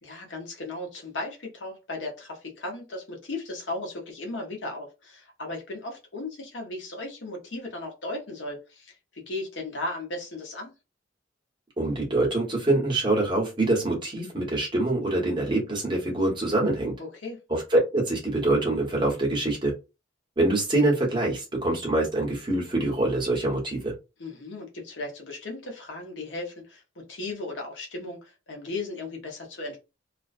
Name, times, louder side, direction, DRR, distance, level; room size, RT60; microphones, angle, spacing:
voice 1, 0.0-10.7 17.0-17.4 24.2-29.8, left 2 dB, 65° left, 1 dB, 0.8 m, -36 dB
voice 2, 11.8-16.9 17.5-19.7 20.4-23.9, right 2 dB, 25° right, -3 dB, 1.0 m, -25 dB
2.4 x 2.2 x 2.4 m, 0.27 s
head